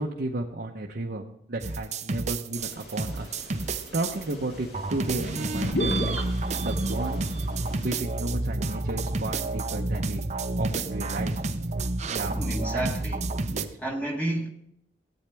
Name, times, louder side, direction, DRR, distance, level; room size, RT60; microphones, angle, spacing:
voice 1, 0.0-3.4 3.6-7.3 7.8-10.2 10.6-12.4 12.7-12.9 13.5-13.8, right 2 dB, 60° right, 0.9 m, -34 dB
sound 1, 1.6-4.3 4.7-13.7, right 2 dB, 40° right, 0.6 m, -30 dB
sound 2, 2.6-8.0, left 1 dB, 60° left, 2.2 m, -36 dB
voice 2, 12.3-13.4 13.8-14.5, right 1 dB, 10° left, 1.2 m, -31 dB
15.0 x 8.9 x 3.5 m
head